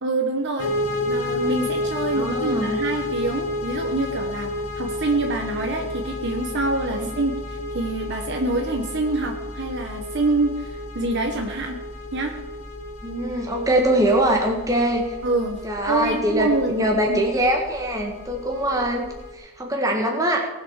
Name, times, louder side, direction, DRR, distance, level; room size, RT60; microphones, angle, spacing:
voice 1, 0.0-0.7 1.1-4.5 4.8-11.8 12.1-12.3 15.2-15.6 15.9-16.8 17.1-17.2, right 2 dB, 50° right, 3 dB, 1.4 m, -26 dB
sound 1, 0.6-19.3, left 1 dB, 75° left, 2.3 m, -31 dB
voice 2, 2.1-2.8 13.0-15.0 15.6-19.1 19.3-20.4, right 1 dB, 15° right, 0 dB, 1.9 m, -22 dB
19.0 x 8.1 x 6.6 m, 1.1 s
head